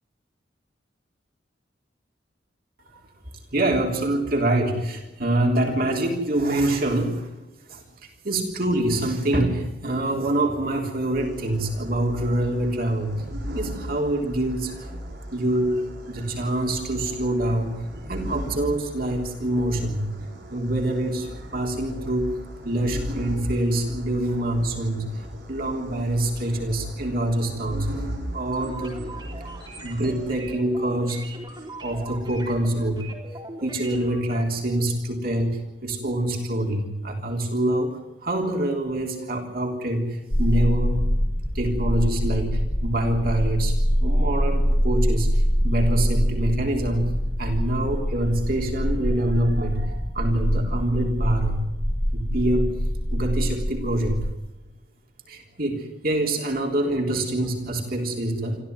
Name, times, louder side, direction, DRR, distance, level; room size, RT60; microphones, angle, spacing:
voice 1, 3.5-7.4 7.7-13.1 13.5-14.9 15.3-17.8 18.1-20.0 20.5-22.3 22.6-28.1 28.3-29.0 29.8-31.3 31.8-33.1 33.6-41.0 41.5-43.7 44.0-47.1 47.4-51.6 52.1-52.7 53.1-54.2 55.3-58.6, right 1 dB, 55° right, 2 dB, 3.5 m, -25 dB
sound 1, 11.1-30.3, equal, 70° right, 7.9 m, -37 dB
sound 2, 28.5-34.4, right 2 dB, 25° right, 3.9 m, -41 dB
sound 3, 40.3-54.3, equal, 35° left, 2.8 m, -24 dB
26.0 x 14.5 x 9.5 m, 1.0 s
head